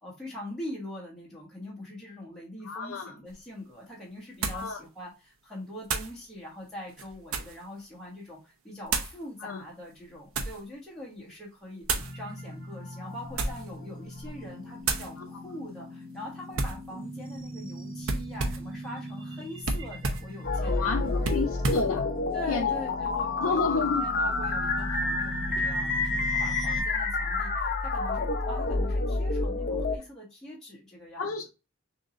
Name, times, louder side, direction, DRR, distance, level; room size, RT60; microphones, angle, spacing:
voice 1, 0.0-21.3 22.3-31.4, left 1 dB, 5° left, 1.2 m, -43 dB
voice 2, 2.6-3.2 4.5-4.8 9.4-9.6 15.2-15.3 20.8-22.1 22.5-22.7 23.4-24.0 31.2-31.5, left 4 dB, 85° left, 0.6 m, -30 dB
sound 1, 3.3-3.4 4.4-4.7 5.8-6.2 6.9-7.6 8.9-9.2 9.9-10.6 11.8-12.1 13.2-13.7 14.1-14.4 14.8-15.1 16.5-16.8 18.0-18.7 19.6-20.3 21.2-21.9, right 3 dB, 90° right, 0.9 m, -31 dB
sound 2, 12.0-26.8, equal, 45° right, 1.7 m, -41 dB
sound 3, 20.4-30.0, left 3 dB, 50° left, 0.7 m, -28 dB
6.3 x 2.9 x 2.5 m
head